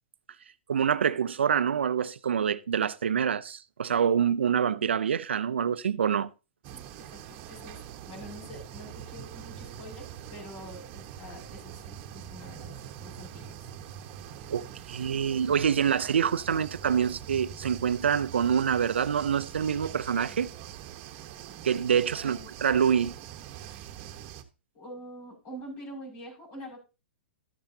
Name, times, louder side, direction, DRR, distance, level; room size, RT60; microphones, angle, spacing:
voice 1, 0.7-6.3 14.5-20.5 21.6-23.1, right 7 dB, 80° right, 0.5 m, -26 dB
sound 1, 6.6-24.4, right 10 dB, 40° right, 1.1 m, -44 dB
voice 2, 6.7-7.8 8.1-12.7 13.0-13.5 22.2-22.5 24.7-26.8, equal, 40° left, 6.0 m, -45 dB
13.0 x 8.8 x 2.8 m
hypercardioid pair, 120°, 6 cm